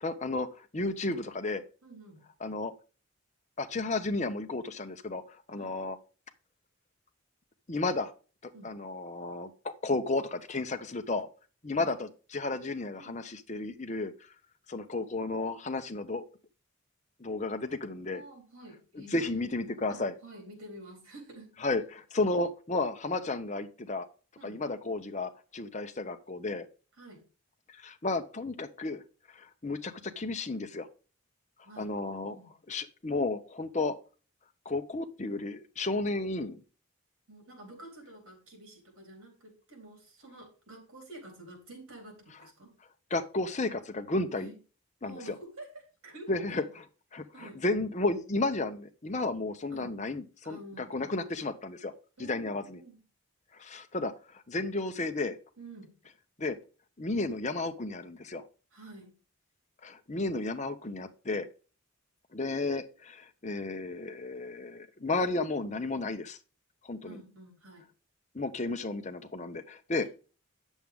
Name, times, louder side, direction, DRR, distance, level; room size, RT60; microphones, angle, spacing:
voice 1, 0.0-1.6 2.4-2.7 3.6-6.0 7.7-8.1 8.4-11.3 11.6-14.3 14.7-16.2 17.2-18.2 18.9-20.1 21.6-24.1 24.4-26.7 27.7-29.0 29.3-30.9 31.8-32.4 32.7-33.9 34.6-36.6 43.1-44.5 45.0-45.4 46.3-46.6 47.1-51.9 52.2-52.8 53.5-55.4 56.4-56.6 57.0-58.4 59.8-61.5 62.3-66.4 66.8-67.2 68.3-70.1, left 2 dB, 35° left, 8 dB, 0.7 m, -33 dB
voice 2, 1.8-2.2 5.5-5.8 8.5-8.7 11.8-12.0 13.0-13.2 18.1-19.4 19.9-21.5 24.4-24.6 26.9-27.2 31.6-32.5 37.3-42.7 44.4-44.6 45.0-46.7 47.3-47.7 49.7-50.0 50.4-51.2 52.2-53.0 55.6-55.9 58.7-59.1 67.0-67.9, right 1 dB, 80° right, 2 dB, 3.9 m, -49 dB
9.1 x 7.2 x 3.5 m, 0.36 s
head